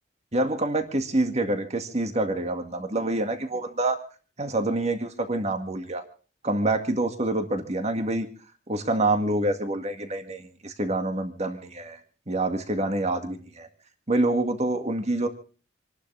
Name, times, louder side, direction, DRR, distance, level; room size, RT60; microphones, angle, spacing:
voice 1, 0.3-4.0 4.4-6.0 6.4-8.3 8.7-12.0 12.3-13.7 14.1-15.3, right 2 dB, 35° right, 7 dB, 2.0 m, -26 dB
28.0 x 11.5 x 3.4 m, 0.39 s
head